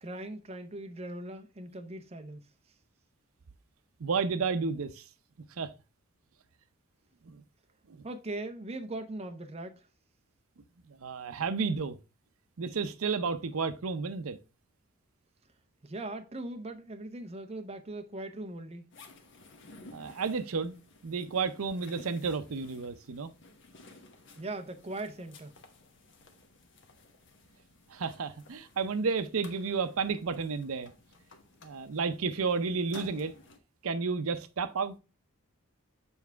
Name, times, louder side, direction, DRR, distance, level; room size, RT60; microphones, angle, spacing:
voice 1, 0.0-2.5 8.0-9.9 15.8-18.8 24.4-25.5, right 2 dB, 30° right, 0.6 m, -40 dB
voice 2, 4.0-5.0 5.6-5.7 7.3-7.4 7.9-8.0 10.9-12.0 12.6-14.4 19.9-20.7 21.0-23.3 27.9-30.9 31.6-33.4 33.8-34.9, right 5 dB, 75° right, 0.6 m, -32 dB
sound 1, 18.9-33.6, left 3 dB, 55° left, 1.1 m, -55 dB
7.0 x 4.7 x 3.4 m
head